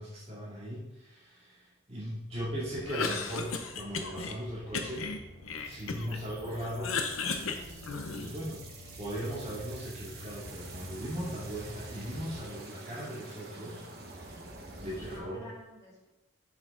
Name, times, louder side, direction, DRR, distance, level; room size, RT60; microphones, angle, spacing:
voice 1, 0.0-5.1 5.6-7.0 8.2-8.6 9.0-13.9 14.8-15.4, equal, 30° right, -8 dB, 2.2 m, -38 dB
sound 1, 2.3-12.5, left 1 dB, 90° left, 1.9 m, -49 dB
Cough, 2.8-4.4 4.7-6.2 6.6-8.5, left 4 dB, 70° left, 0.7 m, -35 dB
sound 2, 5.5-15.2, right 3 dB, 45° right, 1.4 m, -49 dB
voice 2, 7.3-7.8 14.9-16.1, left 1 dB, 15° left, -8 dB, 2.8 m, -49 dB
7.3 x 6.2 x 3.8 m, 0.98 s
head